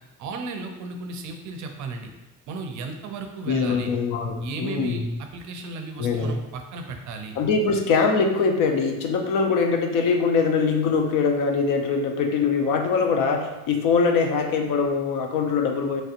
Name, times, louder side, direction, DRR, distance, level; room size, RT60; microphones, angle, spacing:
voice 1, 0.2-2.1 2.5-3.9 4.4-7.4, right 4 dB, 60° right, 4 dB, 0.4 m, -35 dB
voice 2, 3.5-5.0 6.0-6.3 7.4-16.0, left 5 dB, 70° left, 4 dB, 0.5 m, -22 dB
3.2 x 2.7 x 2.5 m, 1.0 s
cardioid pair, 160°, 33 cm